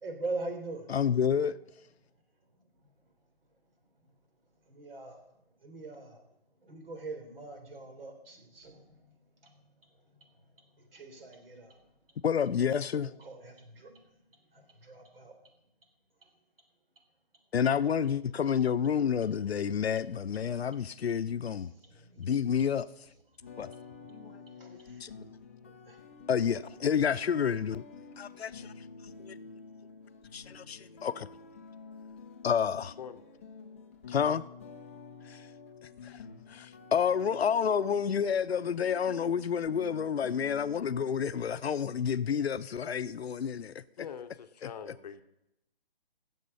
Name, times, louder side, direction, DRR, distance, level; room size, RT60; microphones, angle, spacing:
voice 1, 0.0-0.8 4.7-5.2 5.6-6.2 6.6-9.0 9.4-9.6 10.8-11.8 13.0-14.0 14.5-15.4 22.0-22.3 23.9-24.1 24.4-25.1 25.7-26.0, right 3 dB, 65° right, 3.6 m, -42 dB
voice 2, 0.9-1.6 12.2-13.1 17.5-21.7 22.2-22.9 23.6-23.7 24.1-24.3 24.7-25.1 26.3-27.8 28.2-28.7 29.2-29.3 30.3-31.3 32.4-32.9 34.1-34.4 35.3-35.4 36.0-36.2 36.5-43.8 44.6-44.7, left 7 dB, 85° left, 0.7 m, -29 dB
sound 1, 23.4-41.1, left 5 dB, 15° left, 0.5 m, -50 dB
voice 3, 44.0-45.2, left 7 dB, 40° left, 0.8 m, -43 dB
16.0 x 7.4 x 5.5 m
hypercardioid pair, 155°, 31 cm